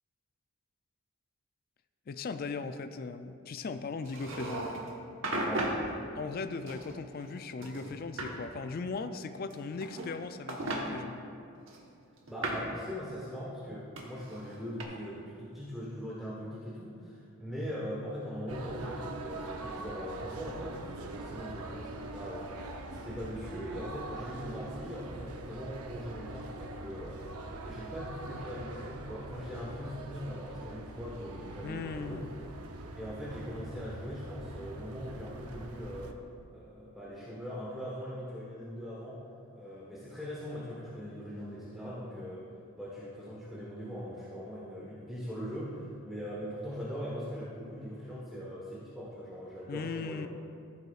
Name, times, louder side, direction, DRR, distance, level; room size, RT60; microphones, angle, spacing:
voice 1, 2.1-4.7 6.2-11.2 31.6-32.3 49.7-50.3, left 4 dB, 40° left, 9 dB, 0.3 m, -38 dB
sound 1, 4.1-4.9 5.2-5.8 6.7-7.3 7.6-8.3 9.5-10.2 10.5-10.8 11.7-12.7 14.0-14.8, right 1 dB, 60° right, 1.2 m, -36 dB
voice 2, 12.3-27.2 27.6-32.2 32.9-36.2 36.5-39.2 39.5-42.4 42.7-50.3, equal, ahead, -9 dB, 1.2 m, -41 dB
sound 2, 18.5-36.1, right 2 dB, 80° right, 0.7 m, -43 dB
15.0 x 8.2 x 2.4 m, 2.4 s
head